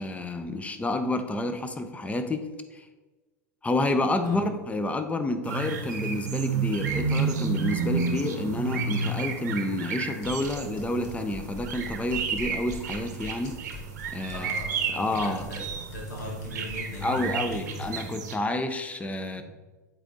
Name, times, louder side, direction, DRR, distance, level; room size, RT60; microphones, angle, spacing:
voice 1, 0.0-2.9 3.6-13.6 14.1-14.6 14.9-15.5 17.0-19.4, left 2 dB, 15° left, 8 dB, 0.7 m, -29 dB
sound 1, 5.4-18.4, right 5 dB, 75° right, 0.9 m, -31 dB
sound 2, 10.2-18.0, left 4 dB, 60° left, 1.8 m, -44 dB
voice 2, 14.3-15.6 15.9-18.1 19.4-19.5, left 1 dB, 80° left, -3 dB, 2.2 m, -39 dB
7.9 x 4.3 x 3.9 m, 1.2 s
hypercardioid pair, 85°, 10 cm